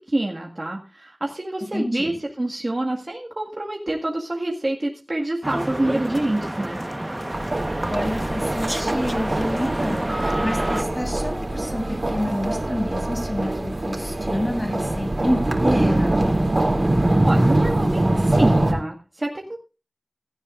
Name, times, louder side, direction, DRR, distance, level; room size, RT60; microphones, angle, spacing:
voice 1, 0.1-6.8 17.2-19.6, right 1 dB, 55° right, 0 dB, 1.9 m, -27 dB
voice 2, 1.7-2.1 7.9-16.3, equal, 30° left, 2 dB, 7.3 m, -28 dB
sound 1, 5.4-10.8, right 1 dB, 25° right, 1.2 m, -29 dB
sound 2, 7.3-18.7, right 1 dB, 75° right, 3.0 m, -23 dB
16.5 x 14.0 x 2.6 m, 0.31 s
wide cardioid pair, 40°, 0 cm